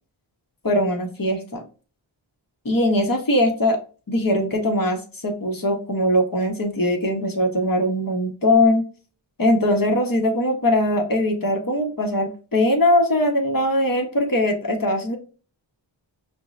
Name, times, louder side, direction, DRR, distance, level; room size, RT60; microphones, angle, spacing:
voice 1, 0.6-1.6 2.6-3.8 4.1-8.8 9.4-15.2, left 1 dB, 45° left, 3 dB, 1.0 m, -21 dB
5.4 x 2.0 x 2.4 m, 0.37 s
wide cardioid pair, 40°, 48 cm